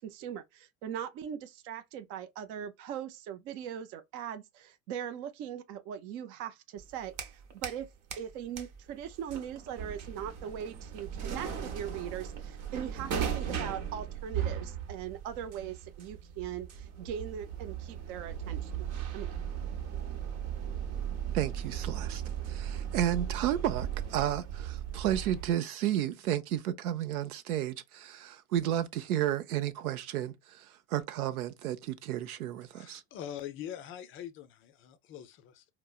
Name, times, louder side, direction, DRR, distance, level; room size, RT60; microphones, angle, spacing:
voice 1, 0.0-7.1 7.5-7.9 8.2-18.9 19.1-19.4, right 9 dB, 30° right, 0.3 m, -40 dB
sound 1, 6.8-7.8 8.1-25.6, right 8 dB, 50° right, 0.9 m, -37 dB
voice 2, 21.3-22.2 22.5-33.0, right 11 dB, 75° right, 0.7 m, -32 dB
voice 3, 32.7-35.7, left 10 dB, 30° left, 0.5 m, -43 dB
4.3 x 2.0 x 2.3 m
hypercardioid pair, 95°, 44 cm